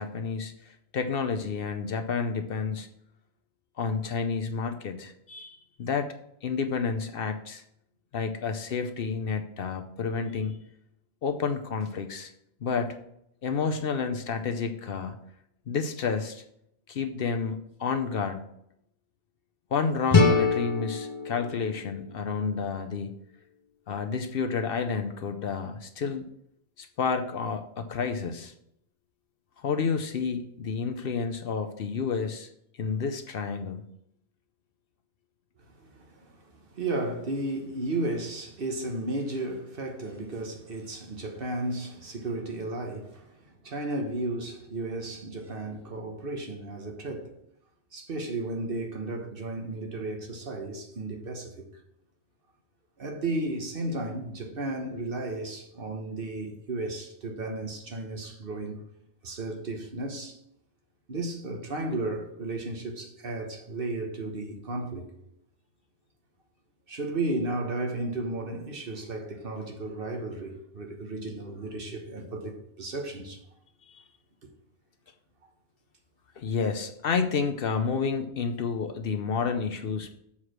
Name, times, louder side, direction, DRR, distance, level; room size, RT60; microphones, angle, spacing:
voice 1, 0.0-2.9 3.8-6.1 6.4-7.6 8.1-10.5 11.2-12.3 12.6-13.0 13.4-15.1 15.7-16.4 16.9-18.4 19.7-23.1 23.9-26.3 26.8-28.5 29.6-32.5 32.8-33.8 76.4-80.1, left 5 dB, 60° left, 0.8 m, -30 dB
sound 1, 20.1-23.0, left 4 dB, 35° left, 0.5 m, -25 dB
voice 2, 35.6-47.3 47.9-51.7 53.0-58.8 59.2-60.4 61.1-65.1 66.9-73.4, right 2 dB, 55° right, 1.3 m, -34 dB
7.2 x 4.8 x 6.1 m
omnidirectional pair, 1.2 m